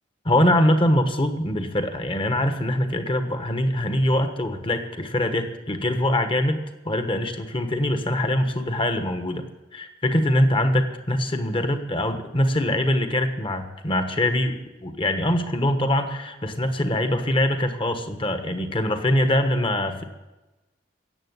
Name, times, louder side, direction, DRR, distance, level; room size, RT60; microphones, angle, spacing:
voice 1, 0.2-6.6 6.8-9.4 9.7-20.0, left 1 dB, 30° left, 8 dB, 1.3 m, -23 dB
17.0 x 7.7 x 9.5 m, 1.1 s
head